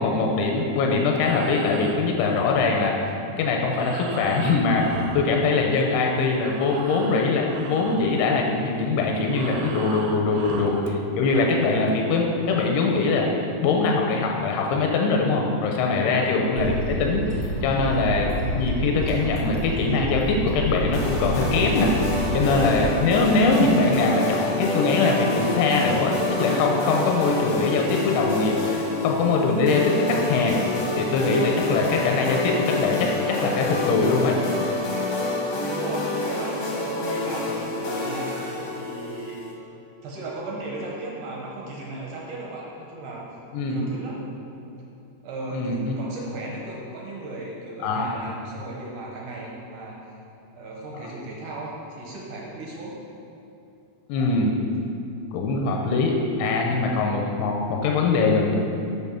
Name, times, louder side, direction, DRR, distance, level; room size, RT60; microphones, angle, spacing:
voice 1, 0.0-3.0 3.4-21.9 22.3-28.8 29.0-30.6 30.9-34.5 43.5-43.8 45.5-46.0 47.8-48.2 51.0-51.1 54.1-54.6 55.3-58.6, left 3 dB, 85° left, 1 dB, 2.8 m, -22 dB
Breathing, 1.0-6.0 6.3-11.0, right 5 dB, 90° right, 2.8 m, -39 dB
voice 2, 10.3-10.6 16.0-16.3 23.1-23.3 35.7-39.4 40.0-43.2 43.7-44.2 45.2-50.2 50.6-53.0, right 2 dB, 70° right, -3 dB, 2.1 m, -36 dB
sound 1, 16.5-22.9, equal, 35° right, 1.6 m, -29 dB
sound 2, 20.9-39.5, left 2 dB, 60° left, 2.2 m, -28 dB
7.3 x 7.1 x 5.8 m, 2.7 s
omnidirectional pair, 4.8 m